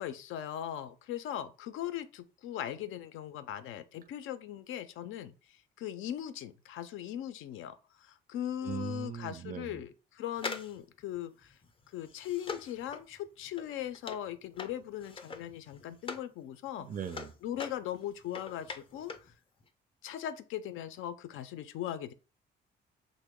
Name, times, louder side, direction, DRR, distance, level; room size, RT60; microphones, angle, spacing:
voice 1, 0.0-11.6 11.9-16.9 17.4-19.3 20.0-22.1, left 11 dB, 85° left, 0.4 m, -39 dB
voice 2, 8.6-9.8 16.8-17.3, right 8 dB, 45° right, 0.4 m, -39 dB
sound 1, 10.3-16.3 16.7-19.3 19.6-19.7, left 4 dB, 25° left, 0.4 m, -43 dB
3.0 x 2.1 x 3.5 m
cardioid pair, 90°, 20 cm